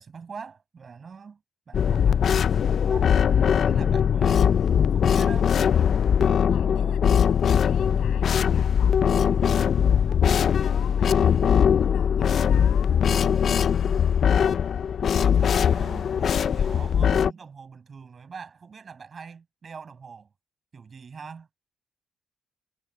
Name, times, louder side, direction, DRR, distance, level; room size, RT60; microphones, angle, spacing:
voice 1, 0.0-1.4 1.7-4.5 4.9-5.5 15.0-20.3 20.7-21.5, right 5 dB, 40° right, 6.4 m, -43 dB
sound 1, 1.7-17.3, left 8 dB, 55° left, 0.4 m, -21 dB
voice 2, 6.5-13.1, left 12 dB, 80° left, 6.8 m, -48 dB
cardioid pair, 90°, 0 cm